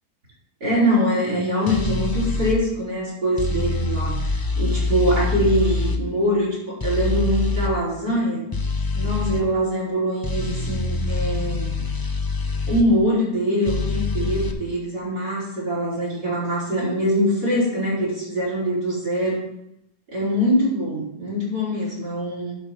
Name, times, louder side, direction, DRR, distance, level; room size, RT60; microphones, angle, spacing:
voice 1, 0.6-8.4 9.0-11.7 12.7-19.4 20.1-22.6, equal, 80° right, -4 dB, 5.2 m, -23 dB
sound 1, 1.7-2.6 3.4-6.0 6.8-7.7 8.5-9.4 10.2-12.9 13.7-14.5, left 3 dB, 30° left, 0.4 m, -25 dB
11.0 x 5.1 x 6.2 m, 0.79 s
omnidirectional pair, 1.7 m